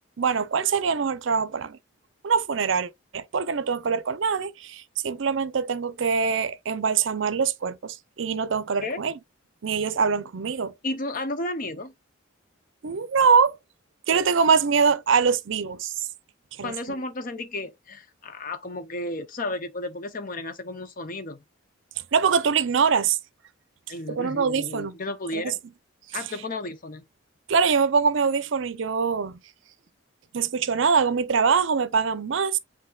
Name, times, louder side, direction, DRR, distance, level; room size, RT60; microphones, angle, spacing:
voice 1, 0.2-1.8 2.2-9.2 9.6-10.7 12.8-13.6 14.1-15.9 16.6-16.7 22.1-23.2 24.1-24.9 25.3-25.5 27.5-29.4 30.3-32.6, right 5 dB, 65° right, 0.5 m, -23 dB
voice 2, 10.8-11.9 16.6-21.4 23.9-25.6 26.1-27.0, left 2 dB, 45° left, 0.7 m, -33 dB
8.0 x 2.7 x 2.3 m
head